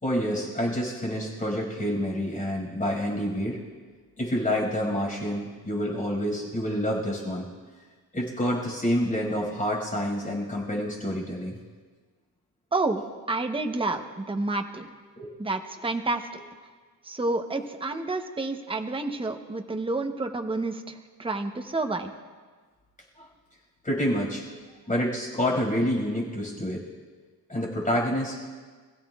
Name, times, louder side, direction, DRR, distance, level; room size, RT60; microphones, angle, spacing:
voice 1, 0.0-3.6 4.2-7.5 8.1-11.6 15.2-15.3 23.2-23.3 23.8-24.4 24.9-26.8 27.5-28.3, equal, 20° left, -2 dB, 5.6 m, -28 dB
voice 2, 12.7-14.9 15.4-16.3 17.0-22.1, right 2 dB, 15° right, 5 dB, 0.9 m, -29 dB
27.0 x 15.5 x 2.4 m, 1.5 s
wide cardioid pair, 140°, 40 cm